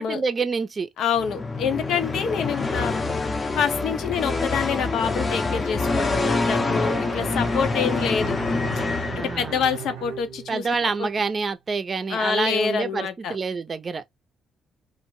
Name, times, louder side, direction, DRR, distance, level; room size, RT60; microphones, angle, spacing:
voice 1, 0.0-0.9 9.1-9.6 10.5-14.0, right 4 dB, 35° right, 0.5 m, -27 dB
voice 2, 1.0-3.0 3.6-8.4 9.2-10.7 11.0-11.1 12.1-13.4, left 7 dB, 75° left, 0.7 m, -26 dB
sound 1, 1.1-9.8, left 3 dB, 30° left, 0.6 m, -26 dB
Bowed string instrument, 6.3-11.1, right 8 dB, 90° right, 0.6 m, -38 dB
2.5 x 2.1 x 3.0 m
cardioid pair, 90°, 0 cm